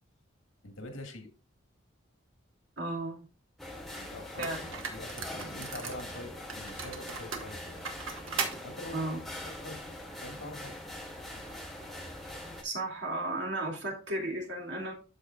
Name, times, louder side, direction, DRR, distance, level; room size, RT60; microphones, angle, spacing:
voice 1, 0.6-1.3 4.0-7.9 8.6-9.1 9.6-9.8 10.2-10.7 11.3-11.5, left 1 dB, 85° left, 4 dB, 2.0 m, -44 dB
voice 2, 2.8-3.3 4.4-4.6 8.9-9.2 12.6-14.9, right 1 dB, 60° right, 0 dB, 2.6 m, -34 dB
sound 1, 3.6-12.6, left 1 dB, ahead, 1.4 m, -43 dB
sound 2, 3.8-3.9 4.4-6.1 6.5-8.6, right 5 dB, 85° right, 1.6 m, -37 dB
13.0 x 4.8 x 2.4 m, 0.33 s
head